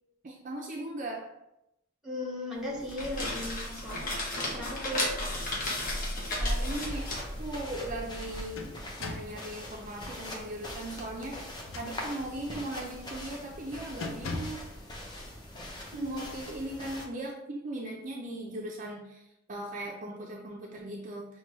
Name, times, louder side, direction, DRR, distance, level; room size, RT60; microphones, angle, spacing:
voice 1, 0.2-1.3 6.4-8.7 9.0-11.5 11.8-14.6 15.8-19.2 19.5-21.2, right 1 dB, 40° right, 0.4 m, -38 dB
voice 2, 2.0-4.2 4.5-5.1 15.9-16.2, left 1 dB, 5° right, 1.0 m, -37 dB
sound 1, 2.7-8.4, left 1 dB, 45° left, 0.9 m, -33 dB
sound 2, 5.3-6.1 6.5-6.6 8.1-9.4 11.5-12.4 12.9-13.1 13.4-13.6 14.0-14.7, left 2 dB, 80° left, 0.5 m, -40 dB
sound 3, 6.7-17.1, left 1 dB, 20° left, 0.6 m, -43 dB
5.9 x 2.2 x 3.0 m
head